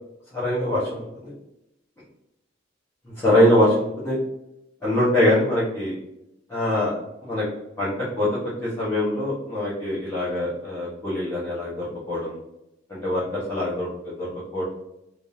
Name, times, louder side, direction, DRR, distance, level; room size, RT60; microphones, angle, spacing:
voice 1, 0.3-1.3 3.0-4.2 4.8-5.9 6.5-6.9 7.2-7.4 7.8-12.4 12.9-14.6, left 1 dB, 15° left, -11 dB, 1.1 m, -23 dB
3.6 x 3.2 x 2.7 m, 0.86 s
head